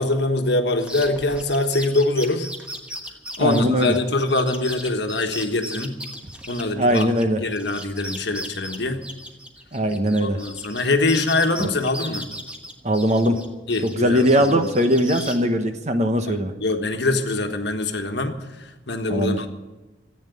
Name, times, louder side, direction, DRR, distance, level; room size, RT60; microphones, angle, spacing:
voice 1, 0.0-2.5 3.4-6.0 6.5-9.0 10.2-12.3 13.7-14.6 16.3-19.5, left 2 dB, 65° left, 5 dB, 1.4 m, -24 dB
sound 1, 0.8-7.2 7.5-10.8 11.1-13.4 13.7-15.4, equal, 5° right, 1.3 m, -36 dB
voice 2, 3.4-4.0 6.8-7.4 9.7-10.4 11.6-11.7 12.8-13.4 13.8-16.5 19.1-19.4, equal, 35° right, 7 dB, 1.1 m, -20 dB
14.5 x 8.9 x 9.4 m, 1.1 s
head